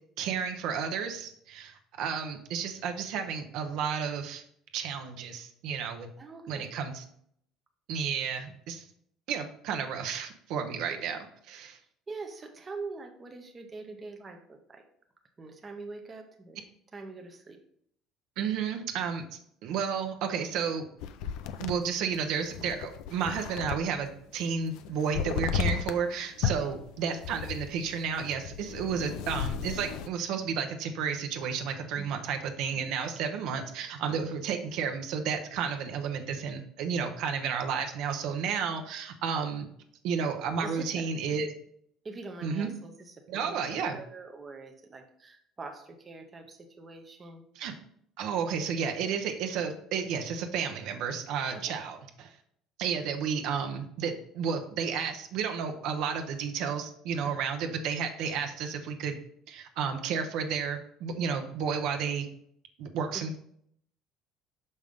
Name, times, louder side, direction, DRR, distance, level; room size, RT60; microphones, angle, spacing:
voice 1, 0.2-4.4 4.7-6.1 6.5-7.0 7.9-8.8 9.3-11.2 11.5-11.8 18.4-19.2 19.6-20.8 21.6-39.7 40.0-41.5 42.4-42.7 43.3-44.0 47.6-47.7 48.2-52.3 52.8-59.2 59.5-62.3 62.8-63.4, right 6 dB, 60° right, 5 dB, 0.8 m, -32 dB
voice 2, 6.2-6.7 10.9-11.1 12.1-14.8 15.4-16.6 16.9-17.6 26.4-26.7 32.0-32.2 33.3-33.5 40.6-41.4 42.0-47.4 51.5-51.8 57.2-57.4 63.1-63.3, right 3 dB, 20° right, 3 dB, 0.6 m, -44 dB
sound 1, 21.0-24.1 24.4-26.1 26.4-30.1, left 8 dB, 70° left, 0.5 m, -34 dB
6.3 x 5.4 x 3.6 m, 0.68 s
cardioid pair, 170°, 0 cm